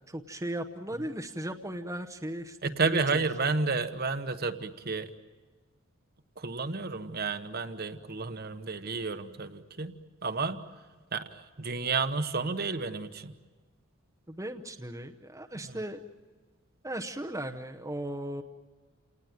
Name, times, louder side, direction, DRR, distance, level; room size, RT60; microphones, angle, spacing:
voice 1, 0.1-3.2 14.3-16.0 16.8-18.4, right 1 dB, 15° right, 5 dB, 0.9 m, -37 dB
voice 2, 2.6-5.1 6.4-10.0 10.2-10.6 11.1-13.3 15.6-15.8, right 4 dB, 50° right, 8 dB, 1.2 m, -31 dB
29.0 x 19.0 x 9.2 m, 1.4 s
head